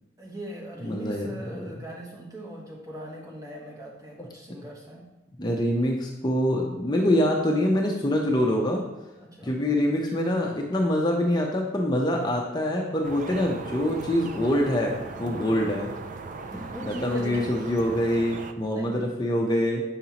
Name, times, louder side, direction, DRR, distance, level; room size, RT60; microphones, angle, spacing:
voice 1, 0.2-5.1 9.2-9.5 15.2-15.7 16.5-17.4 18.0-18.2 18.7-19.1, equal, 20° right, -3 dB, 1.1 m, -39 dB
voice 2, 0.8-1.3 1.5-1.7 5.4-8.8 9.4-15.9 17.0-19.8, left 1 dB, 20° left, 0 dB, 0.7 m, -25 dB
sound 1, 13.0-18.5, right 3 dB, 40° right, 0.3 m, -39 dB
7.2 x 5.3 x 2.9 m, 1.1 s
head